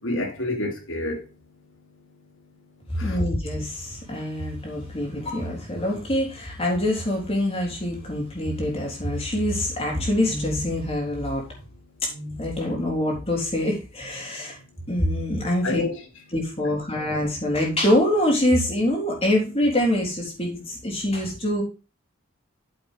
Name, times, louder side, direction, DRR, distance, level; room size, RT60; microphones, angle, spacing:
voice 1, 0.0-1.3 2.9-3.3 15.6-16.0 16.6-16.7, left 2 dB, 70° left, 2.7 m, -28 dB
voice 2, 3.0-11.5 12.0-14.6 14.9-15.8 16.3-21.6, left 1 dB, 30° left, 3.8 m, -25 dB
8.8 x 7.5 x 3.8 m
head